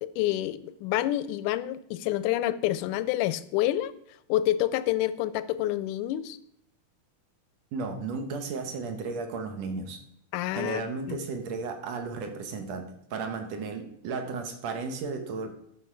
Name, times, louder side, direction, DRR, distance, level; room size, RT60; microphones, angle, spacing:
voice 1, 0.0-3.9 4.3-6.4 10.3-10.8 11.1-11.2, left 14 dB, 80° left, 15 dB, 1.9 m, -28 dB
voice 2, 7.7-10.0 10.5-15.6, right 4 dB, 65° right, 6 dB, 2.1 m, -34 dB
12.0 x 6.0 x 4.7 m, 0.75 s
omnidirectional pair, 3.7 m